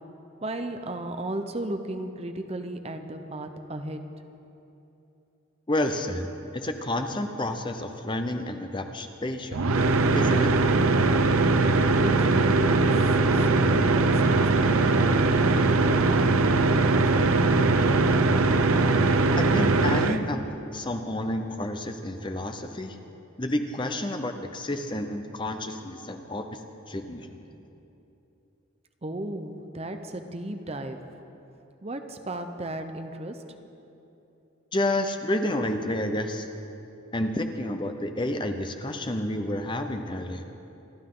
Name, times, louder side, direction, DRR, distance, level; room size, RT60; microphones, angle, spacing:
voice 1, 0.4-4.0 12.0-12.9 13.3-18.2 29.0-31.0 31.8-33.4, right 1 dB, 30° right, 7 dB, 0.7 m, -35 dB
voice 2, 5.7-6.3 6.5-9.6 10.2-10.5 19.4-20.5 20.7-23.0 23.4-26.6 26.9-27.4 34.7-36.5 37.1-40.4, left 1 dB, 25° left, 6 dB, 0.7 m, -30 dB
sound 1, 9.5-20.2, right 3 dB, 90° right, 0.7 m, -21 dB
27.5 x 11.5 x 3.9 m, 2.9 s
head